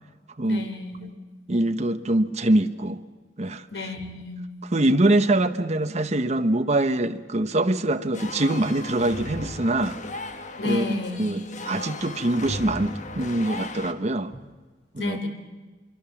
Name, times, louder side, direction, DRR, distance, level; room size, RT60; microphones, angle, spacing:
voice 1, 0.4-1.1 3.7-4.4 10.6-11.3 15.0-15.3, left 3 dB, 90° left, 6 dB, 3.3 m, -31 dB
voice 2, 1.5-3.0 3.4-3.9 4.7-10.0 10.6-10.9 11.2-14.3 14.9-15.2, right 1 dB, 40° right, 7 dB, 0.9 m, -24 dB
sound 1, 8.1-13.9, left 2 dB, 45° left, 1.6 m, -36 dB
25.0 x 23.5 x 7.2 m, 1.3 s
head